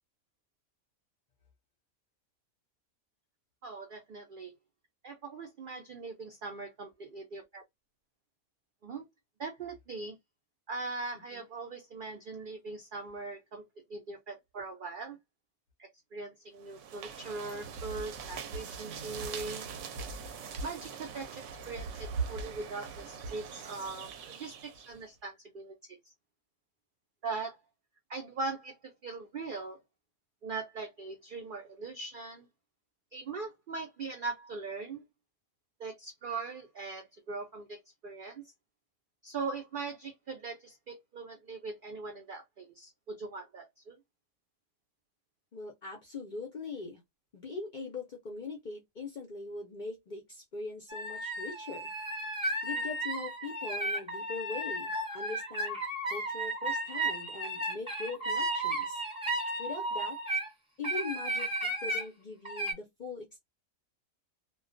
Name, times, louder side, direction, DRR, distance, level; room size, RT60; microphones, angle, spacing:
voice 1, 3.6-4.5 5.0-7.6 8.8-9.1 9.4-10.2 10.7-13.6 13.9-15.2 15.8-19.7 20.6-25.8 27.2-27.6 28.1-29.8 30.4-32.5 33.1-35.0 35.8-38.5 39.2-44.0, right 3 dB, 85° right, 0.4 m, -40 dB
sound 1, 16.6-25.0, right 5 dB, 65° right, 0.8 m, -41 dB
voice 2, 45.5-47.0 47.3-51.9 52.6-55.8 56.1-59.0 59.6-60.2 60.8-63.4, left 3 dB, 55° left, 0.5 m, -41 dB
sound 2, 50.9-60.5 60.8-62.0 62.4-62.7, right 1 dB, 5° right, 0.4 m, -34 dB
2.2 x 2.2 x 2.5 m
omnidirectional pair, 1.5 m